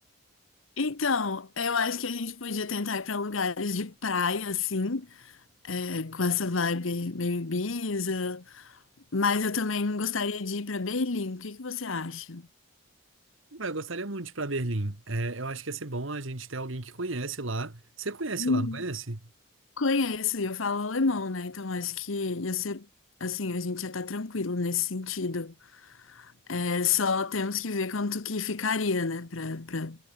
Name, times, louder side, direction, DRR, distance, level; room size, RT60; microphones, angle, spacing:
voice 1, 0.8-5.1 5.6-8.8 9.1-12.5 18.4-18.8 19.8-22.9 23.2-25.5 25.8-30.0, left 4 dB, 80° left, 1.1 m, -29 dB
voice 2, 13.5-19.2, right 2 dB, 75° right, 1.9 m, -33 dB
head